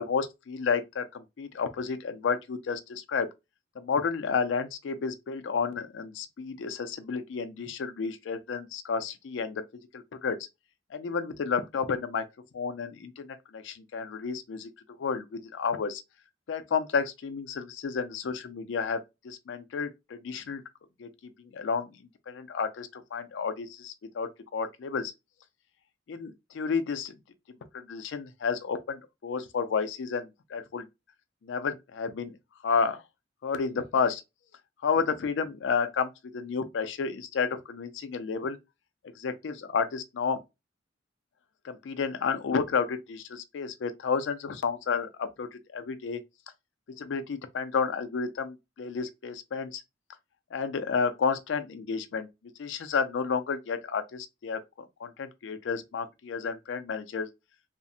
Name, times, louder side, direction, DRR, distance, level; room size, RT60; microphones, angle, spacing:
voice 1, 0.0-3.3 3.8-9.6 9.9-10.4 10.9-12.2 12.5-14.7 15.0-16.0 16.5-19.0 19.2-20.6 21.0-25.1 26.1-27.1 27.7-30.8 31.4-32.3 32.6-33.0 33.4-34.2 34.8-38.6 39.2-40.4 41.6-46.2 47.0-49.8 50.5-52.3 52.6-57.3, left 5 dB, 70° left, 0.4 m, -31 dB
2.4 x 2.0 x 2.6 m
head